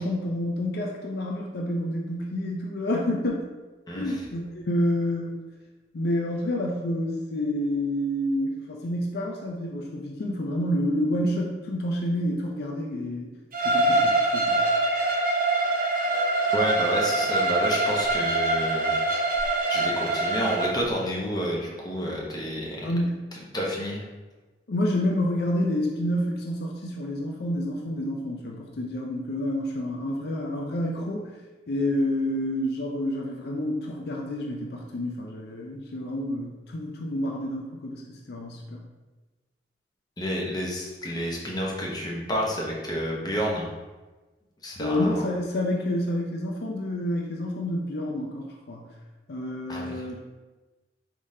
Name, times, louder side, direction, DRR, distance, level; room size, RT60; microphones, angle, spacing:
voice 1, 0.0-3.5 3.9-5.4 5.9-13.4 13.6-14.6 22.8-23.2 24.7-31.3 31.7-38.8 44.8-48.9 49.3-50.2, left 1 dB, 60° left, -1 dB, 0.5 m, -28 dB
voice 2, 3.9-4.2 16.5-18.9 19.7-22.9 23.5-24.0 40.2-43.7 44.6-45.2 49.7-50.0, equal, 25° left, -2 dB, 0.8 m, -29 dB
Bowed string instrument, 13.5-20.7, right 2 dB, 50° right, 0.7 m, -24 dB
4.8 x 3.6 x 2.7 m, 1.2 s
head